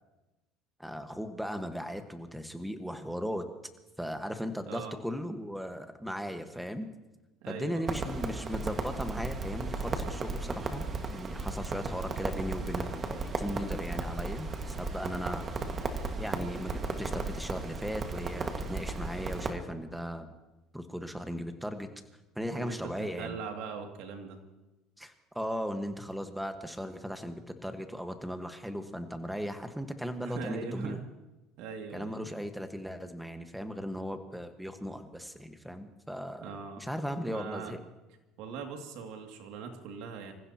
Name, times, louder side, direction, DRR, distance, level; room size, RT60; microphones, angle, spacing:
voice 1, 0.8-3.4 4.0-6.9 7.5-10.8 11.1-15.5 16.2-20.3 20.7-21.9 22.3-23.4 25.0-31.0 31.9-36.5 36.8-37.8, equal, ahead, 7 dB, 1.5 m, -37 dB
voice 2, 7.4-8.0 22.5-24.4 30.2-31.0 31.6-32.2 36.4-36.8 37.3-37.8 38.4-40.3, right 5 dB, 75° right, 3 dB, 2.5 m, -40 dB
Crackle, 7.9-19.5, right 3 dB, 30° right, 1.8 m, -35 dB
26.5 x 15.5 x 2.9 m, 1.1 s
supercardioid pair, 110°, 0 cm